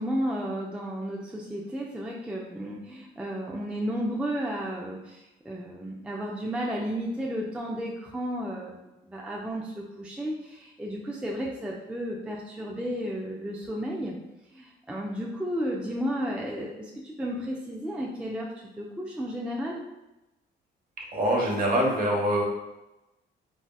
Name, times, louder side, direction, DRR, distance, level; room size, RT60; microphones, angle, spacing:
voice 1, 0.0-5.2 5.5-14.2 14.5-18.5 18.8-19.8, equal, 5° right, -2 dB, 0.4 m, -33 dB
voice 2, 21.1-22.4, equal, 45° right, -3 dB, 1.0 m, -24 dB
4.1 x 2.2 x 2.2 m, 0.97 s
cardioid pair, 90°, 20 cm